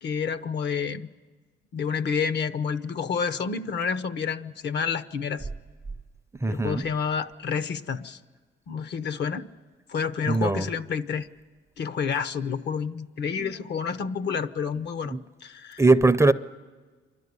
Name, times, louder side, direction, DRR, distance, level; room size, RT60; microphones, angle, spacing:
voice 1, 0.0-1.1 1.7-5.5 6.5-8.2 8.7-9.5 9.9-11.3 11.8-15.2 15.4-15.8, left 6 dB, 60° left, 14 dB, 0.9 m, -29 dB
voice 2, 6.4-6.9 10.3-10.7 13.4-13.5 15.1-15.2 15.8-16.3, right 3 dB, 15° right, 12 dB, 0.5 m, -21 dB
28.0 x 12.0 x 9.6 m, 1.5 s
cardioid pair, 90°, 20 cm